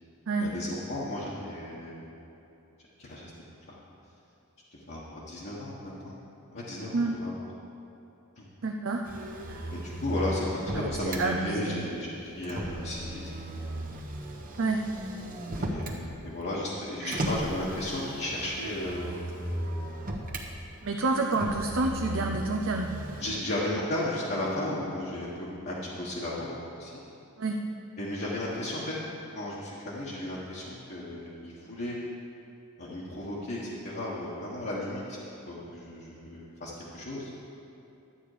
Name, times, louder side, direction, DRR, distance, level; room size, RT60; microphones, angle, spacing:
voice 1, 0.4-2.1 3.0-3.3 3.7-3.8 4.7-6.2 6.5-7.3 8.4-8.5 9.7-13.2 13.5-13.8 15.6-19.1 23.2-26.5 26.8-27.0 28.0-28.9 29.3-32.0 32.8-35.2 35.5-37.3, left 1 dB, 50° left, -8 dB, 1.5 m, -34 dB
voice 2, 8.6-9.0 9.5-9.6 10.7-10.9 11.2-11.8 14.6-14.8 17.0-17.2 20.8-22.9 27.4-27.6, right 3 dB, 60° right, 2 dB, 0.6 m, -28 dB
Motor vehicle (road), 9.0-11.2 12.4-16.0 17.1-20.5 21.3-23.3, right 1 dB, 40° right, 1.1 m, -36 dB
12.0 x 8.7 x 5.0 m, 2.9 s
head